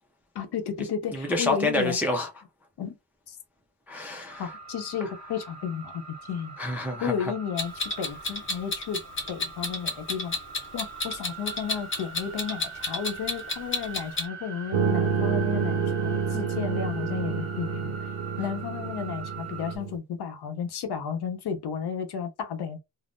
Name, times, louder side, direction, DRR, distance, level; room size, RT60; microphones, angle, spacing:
voice 1, 0.3-2.0 2.8-3.0 3.3-3.4 4.4-6.6 7.0-9.0 9.3-10.4 10.7-17.9 18.4-22.8, left 7 dB, 60° left, 0.7 m, -33 dB
voice 2, 1.1-2.3 3.9-4.5 6.6-7.3, left 2 dB, 5° right, 0.3 m, -28 dB
sound 1, 4.3-19.8, right 5 dB, 35° right, 1.2 m, -43 dB
Clock, 7.6-14.3, left 2 dB, 30° left, 0.7 m, -31 dB
sound 2, 14.7-20.0, right 6 dB, 85° right, 0.6 m, -28 dB
3.4 x 2.0 x 2.5 m
wide cardioid pair, 175°, 44 cm